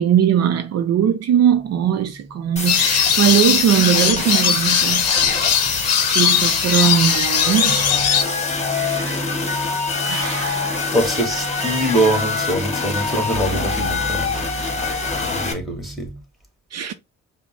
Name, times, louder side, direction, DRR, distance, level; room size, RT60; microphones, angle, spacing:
voice 1, 0.0-5.1 5.6-7.9 8.7-9.1 10.0-10.9 16.7-16.9, right 9 dB, 60° right, 0.5 m, -20 dB
sound 1, 1.5-16.2, right 2 dB, 35° right, 1.4 m, -35 dB
sound 2, 2.6-15.5, left 4 dB, 20° left, 1.1 m, -25 dB
sound 3, 2.7-8.2, left 8 dB, 55° left, 0.7 m, -19 dB
voice 2, 10.9-14.3 15.3-16.1, right 1 dB, ahead, 1.6 m, -23 dB
5.1 x 2.0 x 3.2 m
cardioid pair, 90°, 30 cm